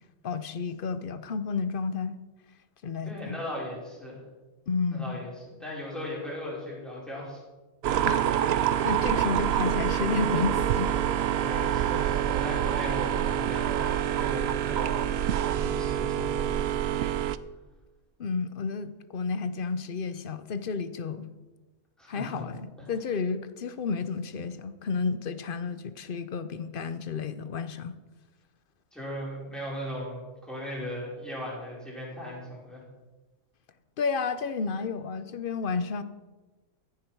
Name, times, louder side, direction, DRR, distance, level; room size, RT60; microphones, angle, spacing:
voice 1, 0.2-2.2 2.8-3.4 4.7-5.2 8.1-8.3 8.8-10.9 18.2-21.3 22.1-28.0 34.0-36.0, left 5 dB, 50° left, 12 dB, 0.8 m, -31 dB
voice 2, 3.0-4.2 4.9-7.4 11.4-16.6 22.0-22.5 22.8-22.9 28.9-32.8, left 1 dB, ahead, -6 dB, 5.3 m, -38 dB
sound 1, 7.8-17.4, right 10 dB, 65° right, 0.6 m, -26 dB
15.0 x 10.5 x 4.6 m, 1.2 s
omnidirectional pair, 1.5 m